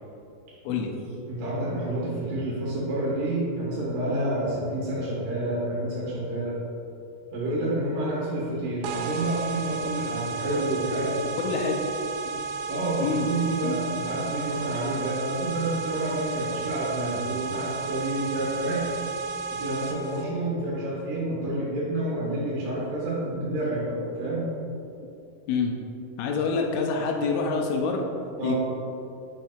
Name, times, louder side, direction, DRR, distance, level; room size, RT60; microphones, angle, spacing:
voice 1, 1.3-6.6 7.3-11.2 12.7-18.9 19.5-24.5 28.4-28.6, right 1 dB, 65° right, -6 dB, 3.0 m, -29 dB
sound 1, 8.8-20.2, right 4 dB, 85° right, 1.9 m, -33 dB
voice 2, 11.4-11.8 12.3-12.4 13.0-13.2 13.6-13.8 25.5-25.7 26.2-28.0 28.4-28.6, left 5 dB, 80° left, 2 dB, 2.6 m, -26 dB
6.5 x 5.8 x 4.4 m, 2.7 s
omnidirectional pair, 4.4 m